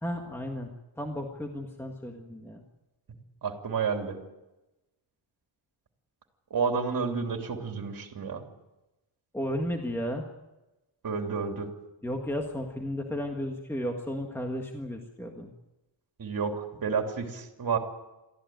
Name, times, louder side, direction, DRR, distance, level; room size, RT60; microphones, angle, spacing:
voice 1, 0.0-2.6 9.3-10.2 12.0-15.5, equal, 5° left, 2 dB, 1.6 m, -34 dB
voice 2, 3.4-4.2 6.5-8.4 11.0-11.7 16.2-17.8, right 5 dB, 45° right, 4 dB, 3.1 m, -30 dB
22.5 x 14.5 x 9.2 m, 1.0 s
wide cardioid pair, 175°, 48 cm